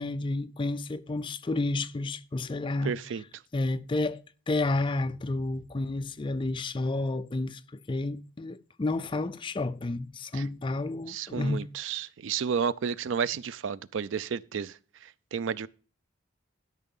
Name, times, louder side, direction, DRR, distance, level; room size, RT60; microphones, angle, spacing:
voice 1, 0.0-3.0 3.5-11.7, left 2 dB, 25° left, 0.4 m, -31 dB
voice 2, 2.8-3.2 10.3-10.4 11.1-14.8 15.3-15.7, right 6 dB, 70° right, 0.4 m, -31 dB
12.5 x 5.6 x 5.3 m
head